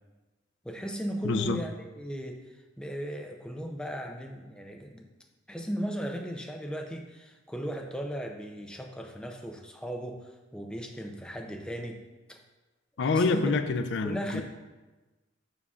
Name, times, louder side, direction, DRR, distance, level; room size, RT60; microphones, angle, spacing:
voice 1, 0.6-2.4 2.8-5.1 5.5-12.0 12.3-12.4 13.0-13.5 14.0-14.4, equal, 5° left, 2 dB, 0.5 m, -36 dB
voice 2, 1.2-1.6 13.0-14.4, left 4 dB, 60° left, 9 dB, 0.4 m, -27 dB
7.1 x 5.5 x 2.4 m, 1.2 s
head